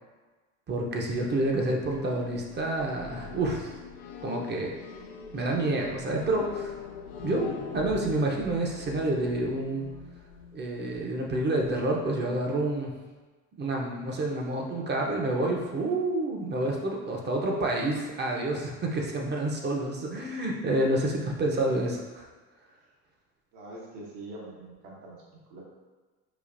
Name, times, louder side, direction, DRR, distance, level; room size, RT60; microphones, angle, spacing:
voice 1, 0.7-3.7 4.2-4.7 5.3-6.7 7.2-9.9 10.5-12.9 13.6-22.3, right 2 dB, 25° right, 0 dB, 0.7 m, -28 dB
sound 1, 0.8-11.8, left 6 dB, 85° left, 0.6 m, -43 dB
voice 2, 23.5-25.6, right 2 dB, 70° right, -5 dB, 1.3 m, -44 dB
4.9 x 2.4 x 2.5 m, 1.3 s
supercardioid pair, 90°, 39 cm